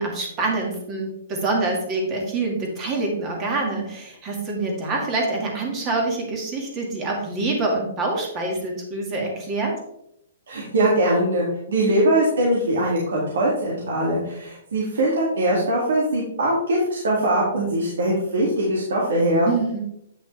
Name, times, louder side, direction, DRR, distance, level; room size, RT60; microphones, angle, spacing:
voice 1, 0.0-9.7 19.4-19.8, right 3 dB, 20° right, 0 dB, 1.9 m, -26 dB
voice 2, 10.5-19.5, right 1 dB, 80° right, -4 dB, 2.1 m, -21 dB
8.7 x 6.0 x 3.3 m, 0.77 s
hypercardioid pair, 160°, 0 cm